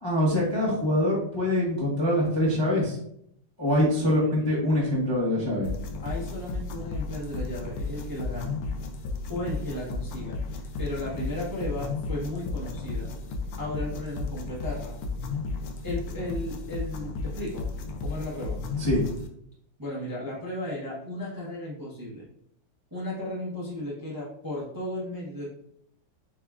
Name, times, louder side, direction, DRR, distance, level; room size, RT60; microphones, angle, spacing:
voice 1, 0.0-3.0 3.6-5.7 18.8-19.0, left 1 dB, 25° left, -6 dB, 0.6 m, -24 dB
voice 2, 4.0-4.5 6.0-8.6 9.3-13.1 13.5-14.9 15.8-17.7 18.0-18.6 19.8-22.2 22.9-25.5, left 1 dB, 20° right, -6 dB, 0.6 m, -35 dB
sound 1, 5.6-19.3, left 3 dB, 90° left, 0.8 m, -34 dB
7.5 x 2.5 x 2.3 m, 0.70 s
omnidirectional pair, 2.3 m